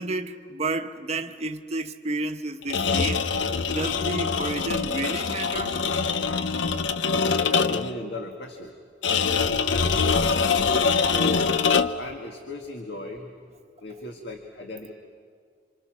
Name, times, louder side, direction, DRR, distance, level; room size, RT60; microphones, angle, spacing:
voice 1, 0.0-5.8, right 2 dB, 35° right, 1.1 m, -31 dB
sound 1, 2.6-8.0 9.0-12.1, left 5 dB, 85° left, 0.8 m, -24 dB
voice 2, 7.5-8.7 9.6-9.9 11.1-13.3 13.8-14.9, left 2 dB, 60° left, 1.8 m, -36 dB
28.0 x 26.0 x 6.2 m
head